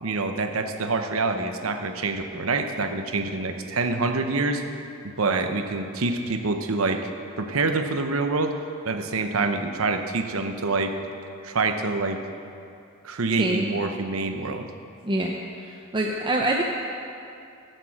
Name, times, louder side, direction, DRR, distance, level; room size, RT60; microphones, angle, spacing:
voice 1, 0.0-4.6 5.0-7.0 7.4-8.5 8.8-10.9 11.4-12.2 13.0-14.7, right 3 dB, 90° right, 6 dB, 0.9 m, -26 dB
voice 2, 13.4-13.7 15.0-15.3 15.6-16.6, right 1 dB, 25° right, 0 dB, 0.7 m, -25 dB
13.5 x 7.6 x 6.4 m, 2.5 s
head